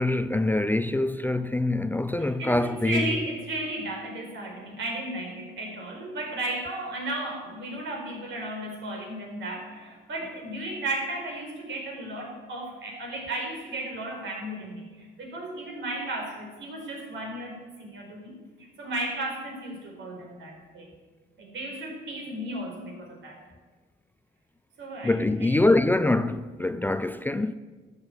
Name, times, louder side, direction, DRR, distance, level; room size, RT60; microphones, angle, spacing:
voice 1, 0.0-3.1 25.0-27.5, left 2 dB, 10° left, 0.4 m, -24 dB
voice 2, 2.2-20.9 21.4-23.4 24.8-25.6, right 1 dB, 70° right, 4.7 m, -34 dB
13.5 x 8.1 x 8.0 m
cardioid pair, 90°, 20 cm